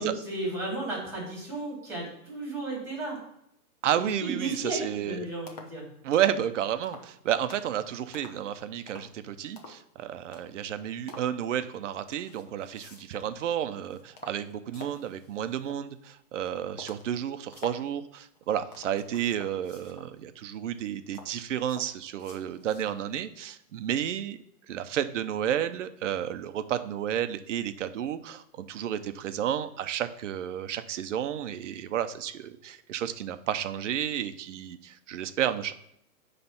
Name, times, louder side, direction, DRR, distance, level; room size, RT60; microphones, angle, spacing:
voice 1, 0.0-3.2 4.0-5.9, right 2 dB, 5° right, -3 dB, 3.5 m, -34 dB
voice 2, 3.8-5.3 6.0-24.4 24.7-35.7, right 10 dB, 50° right, 10 dB, 0.7 m, -31 dB
sound 1, 5.0-5.1 5.5-5.8 6.1-6.4 6.8-7.1 7.5-7.8 8.1-8.5 8.9-9.2 9.6-9.9 10.3-10.6 11.1-11.3 12.1-13.4 13.7-15.9 16.4-16.5 16.8-17.9 18.3-20.1 20.7-23.1 23.5-23.6, left 3 dB, 25° left, 0.8 m, -48 dB
9.6 x 3.3 x 5.9 m, 0.76 s
hypercardioid pair, 165°, 46 cm